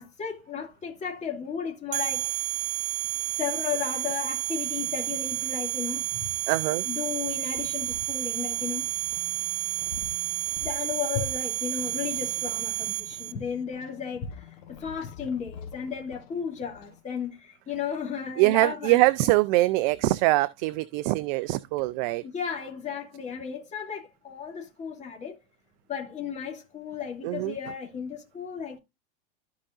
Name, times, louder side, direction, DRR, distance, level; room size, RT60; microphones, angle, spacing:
voice 1, 0.0-2.3 3.4-6.3 6.8-8.8 10.6-19.0 22.2-25.4 25.9-28.8, left 7 dB, 20° left, 2.6 m, -34 dB
sound 1, 1.9-13.3, right 15 dB, 75° right, 0.8 m, -31 dB
sound 2, 4.8-17.0, left 8 dB, 65° left, 1.5 m, -48 dB
voice 2, 6.5-6.8 18.4-22.2 27.2-27.5, right 19 dB, 50° right, 0.5 m, -23 dB
14.0 x 4.9 x 2.6 m
supercardioid pair, 135°, 31 cm